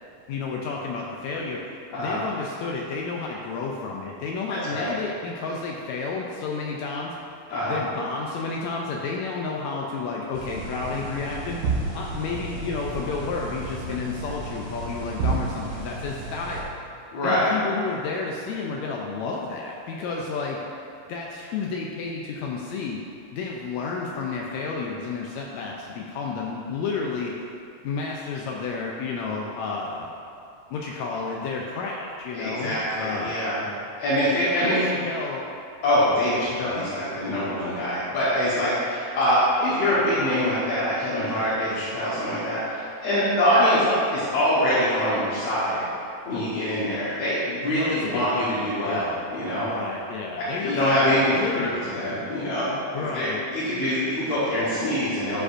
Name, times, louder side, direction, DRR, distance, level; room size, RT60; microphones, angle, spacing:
voice 1, 0.3-7.1 7.7-11.6 11.9-16.8 17.2-20.6 21.1-23.0 23.3-27.5 27.8-30.1 30.7-33.3 34.6-35.5 36.5-36.9 47.6-49.2 49.6-51.8 52.9-53.4, left 4 dB, 85° left, -1 dB, 1.6 m, -31 dB
voice 2, 1.9-2.2 4.5-4.9 7.5-7.8 17.1-17.5 32.3-33.6 34.0-34.8 35.8-45.8 46.3-49.7 50.4-55.4, equal, 60° left, -11 dB, 2.0 m, -24 dB
sound 1, 10.3-16.6, right 3 dB, 80° right, 3.3 m, -32 dB
12.5 x 5.0 x 2.5 m, 2.6 s
omnidirectional pair, 3.8 m